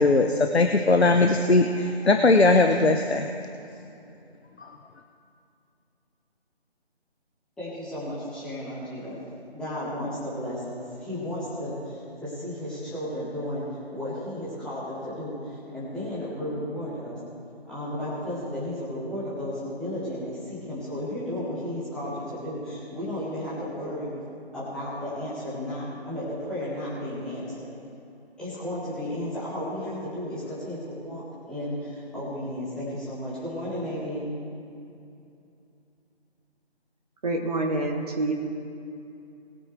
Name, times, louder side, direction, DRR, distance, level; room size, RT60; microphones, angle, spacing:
voice 1, 0.0-3.3 4.6-4.7, left 3 dB, 75° left, 5 dB, 1.0 m, -20 dB
voice 2, 7.6-9.2 9.5-17.2 17.6-24.1 24.5-27.7 28.4-34.4, left 1 dB, ahead, -11 dB, 2.0 m, -33 dB
voice 3, 37.2-38.3, right 2 dB, 35° right, 0 dB, 1.2 m, -26 dB
21.0 x 8.7 x 3.4 m, 2.6 s
figure-of-eight pair, 155°, 32 cm